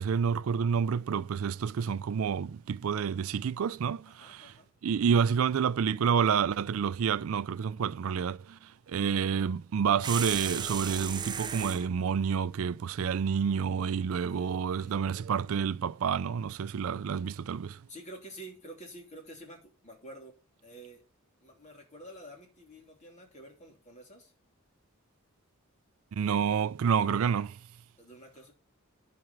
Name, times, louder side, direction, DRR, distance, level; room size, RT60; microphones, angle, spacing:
voice 1, 0.0-4.5 4.8-8.6 8.9-17.8 26.1-27.6, right 7 dB, 70° right, 0.4 m, -29 dB
voice 2, 4.0-4.7 14.1-15.0 17.9-20.3 20.6-21.0 21.4-24.3 28.0-28.5, right 1 dB, 35° left, 3.2 m, -49 dB
sound 1, 10.0-11.9, right 6 dB, 20° right, 0.6 m, -35 dB
11.0 x 5.1 x 6.0 m
head